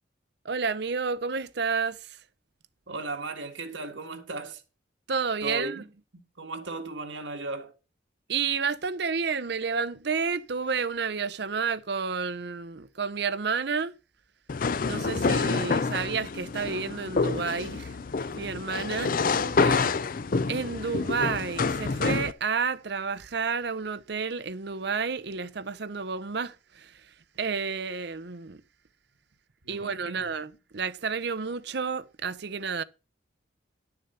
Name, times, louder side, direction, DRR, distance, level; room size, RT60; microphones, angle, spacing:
voice 1, 0.4-2.2 5.1-5.8 8.3-13.9 14.8-18.0 18.4-19.2 20.5-27.1 27.4-28.6 29.7-32.8, right 5 dB, 60° right, 0.7 m, -30 dB
voice 2, 2.9-4.6 5.4-5.9 6.4-7.7 19.0-20.0 29.6-30.2, right 2 dB, 80° right, 1.8 m, -36 dB
sound 1, 14.5-22.3, left 4 dB, 45° left, 0.5 m, -27 dB
11.0 x 6.9 x 5.5 m
head